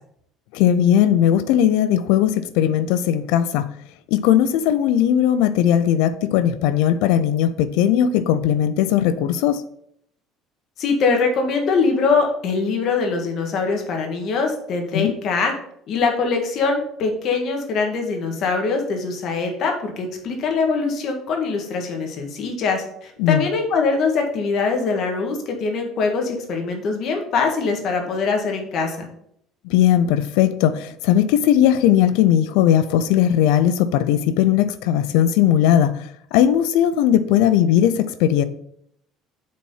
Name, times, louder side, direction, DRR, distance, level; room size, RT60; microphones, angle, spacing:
voice 1, 0.5-3.7 4.1-9.6 14.9-15.1 23.2-23.4 29.6-35.9 36.3-38.4, left 10 dB, 85° left, 14 dB, 0.6 m, -18 dB
voice 2, 10.8-15.5 15.9-29.1, left 4 dB, 55° left, 2 dB, 1.8 m, -22 dB
7.4 x 4.3 x 5.5 m, 0.70 s
cardioid pair, 120°, 0 cm